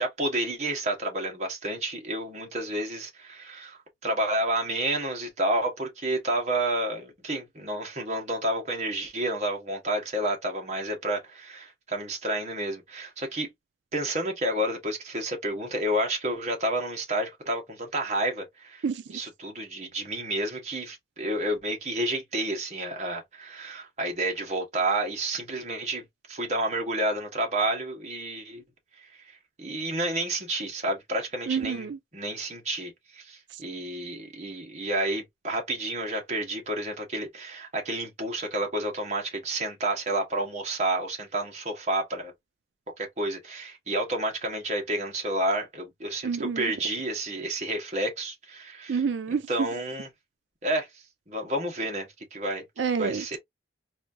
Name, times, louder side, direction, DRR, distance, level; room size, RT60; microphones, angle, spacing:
voice 1, 0.0-13.5 13.9-18.8 19.1-28.6 29.0-29.3 29.6-42.3 43.0-49.0 49.5-50.1 50.6-50.9 51.3-52.6 53.0-53.4, right 1 dB, 40° right, 1.2 m, -30 dB
voice 2, 31.5-32.0 33.5-33.6 46.2-46.7 48.9-49.7 52.8-53.4, right 6 dB, 75° right, 0.4 m, -28 dB
4.2 x 2.6 x 2.6 m
head